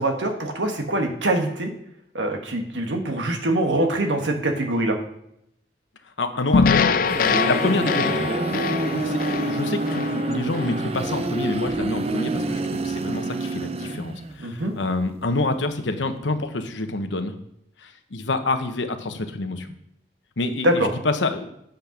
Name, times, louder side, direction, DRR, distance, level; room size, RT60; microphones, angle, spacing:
voice 1, 0.0-1.7 2.1-5.0 14.4-14.7 20.6-20.9, right 1 dB, 90° right, 4 dB, 1.4 m, -23 dB
voice 2, 6.0-17.4 17.8-19.7 20.4-21.5, left 2 dB, 90° left, 8 dB, 1.0 m, -27 dB
sound 1, 6.5-10.8, left 5 dB, 50° left, 0.4 m, -23 dB
sound 2, 6.7-14.4, right 2 dB, 35° right, 0.4 m, -27 dB
8.7 x 5.3 x 5.8 m, 0.76 s
head